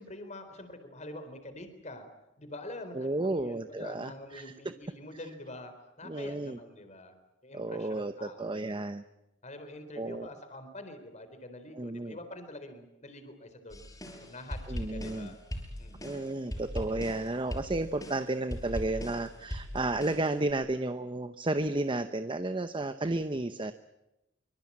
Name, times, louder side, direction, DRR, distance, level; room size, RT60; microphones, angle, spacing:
voice 1, 0.0-2.1 2.4-7.1 7.4-8.9 9.4-13.8 14.2-15.4 15.8-16.2, left 1 dB, 40° left, 8 dB, 4.0 m, -46 dB
voice 2, 2.9-4.5 6.0-6.6 7.5-9.0 10.0-10.3 11.7-12.2 14.7-15.3 16.0-23.7, right 2 dB, 25° right, 10 dB, 0.9 m, -32 dB
sound 1, 13.7-20.5, equal, 20° left, 6.0 m, -40 dB
25.0 x 25.0 x 8.7 m, 0.91 s
head